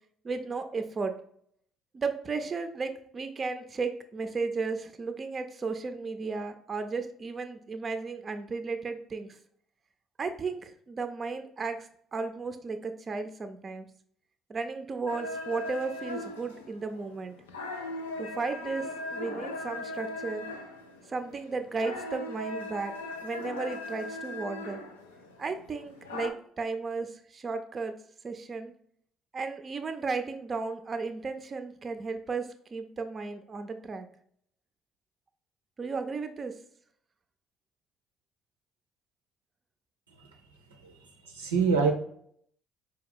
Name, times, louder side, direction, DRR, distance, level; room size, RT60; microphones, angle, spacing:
voice 1, 0.2-1.2 1.9-9.4 10.2-13.9 14.5-17.4 18.2-20.5 21.1-22.9 23.2-24.8 25.4-27.9 28.2-28.7 29.3-34.1 35.8-36.6, right 4 dB, 40° right, 0.5 m, -34 dB
sound 1, 15.1-26.3, left 2 dB, 90° left, 0.4 m, -39 dB
voice 2, 40.7-41.9, right 5 dB, 90° right, 0.6 m, -27 dB
4.7 x 2.3 x 3.6 m
hypercardioid pair, 50°, 0 cm